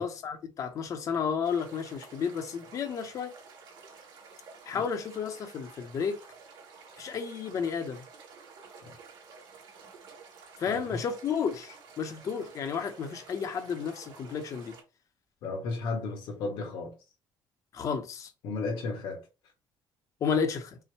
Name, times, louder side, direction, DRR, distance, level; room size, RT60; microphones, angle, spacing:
voice 1, 0.0-3.3 4.7-6.2 7.0-8.1 10.6-14.7 17.7-18.3 20.2-20.8, left 6 dB, 40° left, 0.7 m, -32 dB
sound 1, 1.4-14.8, right 5 dB, 65° right, 2.1 m, -51 dB
voice 2, 10.7-11.0 15.4-17.0 18.4-19.3, left 3 dB, 80° left, 1.4 m, -34 dB
5.5 x 2.1 x 3.2 m
cardioid pair, 165°, 8 cm